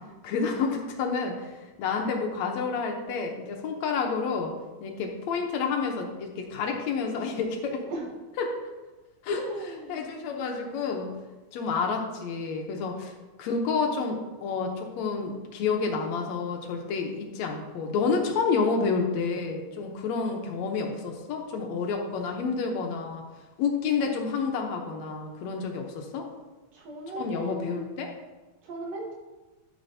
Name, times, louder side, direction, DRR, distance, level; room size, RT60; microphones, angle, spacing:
voice 1, 0.2-4.5 4.8-7.8 8.4-8.5 9.2-9.4 9.9-11.1 11.5-13.1 13.4-23.2 23.6-26.3 27.2-28.1, left 5 dB, 75° left, 2 dB, 2.0 m, -29 dB
voice 2, 9.3-10.1 26.7-27.8 28.6-29.1, right 2 dB, 65° right, -2 dB, 2.5 m, -37 dB
12.5 x 6.5 x 2.7 m, 1.2 s
omnidirectional pair, 3.4 m